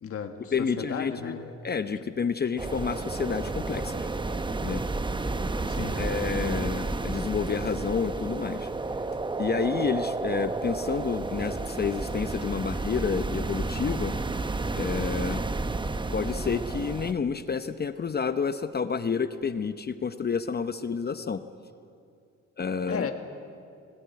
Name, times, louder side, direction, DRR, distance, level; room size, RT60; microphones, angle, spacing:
voice 1, 0.0-1.4 5.7-6.1 22.9-23.1, left 7 dB, 50° left, 5 dB, 1.7 m, -34 dB
voice 2, 0.5-1.4 1.6-4.1 4.6-4.8 5.9-8.7 9.4-14.2 14.8-15.4 16.1-21.4 22.6-23.1, left 6 dB, 35° left, 10 dB, 0.8 m, -29 dB
sound 1, 2.6-17.1, right 3 dB, 15° right, 0.8 m, -31 dB
18.5 x 16.0 x 9.5 m, 2.5 s
cardioid pair, 90°, 30 cm